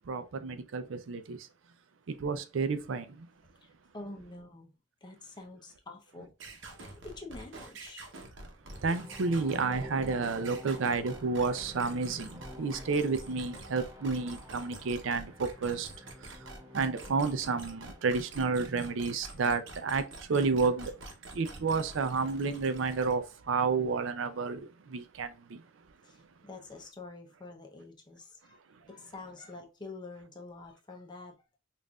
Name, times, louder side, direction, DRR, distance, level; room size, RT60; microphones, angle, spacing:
voice 1, 0.1-1.5 2.1-3.3 8.8-15.9 16.2-16.5 16.7-20.9 21.3-25.6, right 4 dB, 90° right, 0.5 m, -31 dB
voice 2, 3.6-4.7 5.0-8.1 26.0-31.6, left 3 dB, 25° left, 0.7 m, -47 dB
sound 1, 6.4-23.1, right 2 dB, 75° right, 0.8 m, -47 dB
sound 2, 8.6-18.7, left 1 dB, 15° right, 0.8 m, -49 dB
5.3 x 2.5 x 2.3 m
head